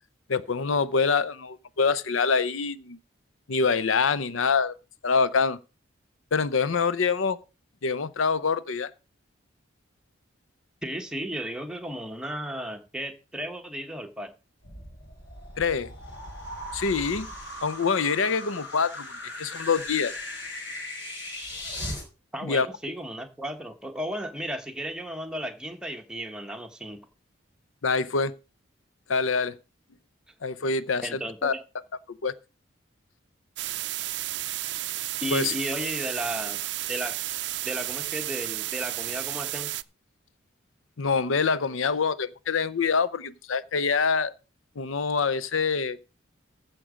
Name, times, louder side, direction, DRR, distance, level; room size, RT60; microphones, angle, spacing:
voice 1, 0.3-3.0 3.5-4.7 5.0-5.6 6.3-7.4 7.8-8.9 15.6-15.9 16.7-17.3 17.6-20.1 22.4-22.7 27.8-28.4 29.1-29.6 30.4-31.5 32.2-32.3 35.3-35.5 41.0-44.3 44.8-46.1, left 5 dB, 85° left, 0.6 m, -25 dB
voice 2, 10.8-14.3 19.4-19.5 22.3-27.1 31.0-31.6 35.2-36.6 36.9-37.1 37.6-39.7, equal, 5° right, 1.2 m, -34 dB
sound 1, 14.6-22.0, left 1 dB, 60° left, 4.8 m, -38 dB
sound 2, 33.6-39.8, right 16 dB, 60° right, 0.4 m, -32 dB
15.0 x 6.1 x 5.1 m
head